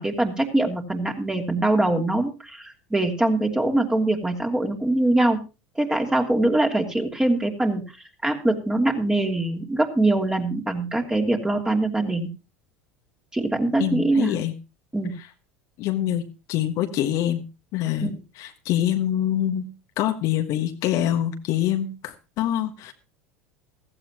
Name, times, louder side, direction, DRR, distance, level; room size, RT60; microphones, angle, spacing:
voice 1, 0.0-5.4 5.8-7.8 8.2-12.3 13.3-14.4 14.9-15.1 18.0-18.1, right 2 dB, 10° right, 2 dB, 2.9 m, -23 dB
voice 2, 13.8-14.5 15.2-15.3 15.8-17.4 17.7-19.7 20.0-22.9, left 12 dB, 55° left, 6 dB, 1.5 m, -25 dB
16.0 x 15.0 x 3.0 m, 0.29 s
hypercardioid pair, 80°, 7 cm